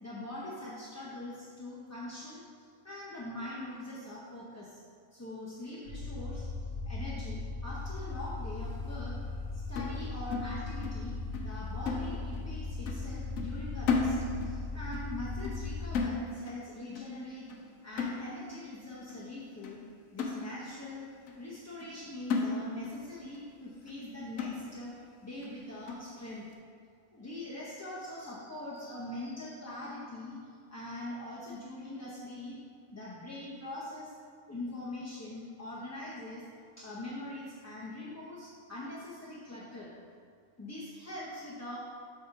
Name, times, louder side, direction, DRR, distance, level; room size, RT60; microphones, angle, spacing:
voice 1, 0.0-2.4 2.8-4.8 5.1-9.2 9.5-11.2 11.4-14.2 14.4-17.5 17.8-19.8 20.1-21.1 21.3-24.9 25.2-26.4 27.1-30.4 30.7-32.6 32.9-34.1 34.5-36.4 36.8-39.9 40.6-41.8, left 1 dB, 15° left, -7 dB, 0.6 m, -43 dB
sound 1, 5.8-16.0, left 3 dB, 55° right, 2.3 m, -38 dB
sound 2, 9.8-11.1 11.3-11.6 11.9-12.6 12.9-13.1 13.4-14.6 14.9-15.1 15.4-15.7 15.9-16.6 17.0-17.2 17.5-17.7 18.0-18.6 19.1-19.2 19.6-19.8 20.2-20.9 21.3-21.4 21.8-22.0 22.3-23.0 23.3-23.4 23.9-24.0 24.4-24.9 25.4-25.5 25.9-26.1, left 4 dB, 80° left, 1.1 m, -34 dB
7.6 x 3.6 x 5.7 m, 2.3 s
omnidirectional pair, 1.4 m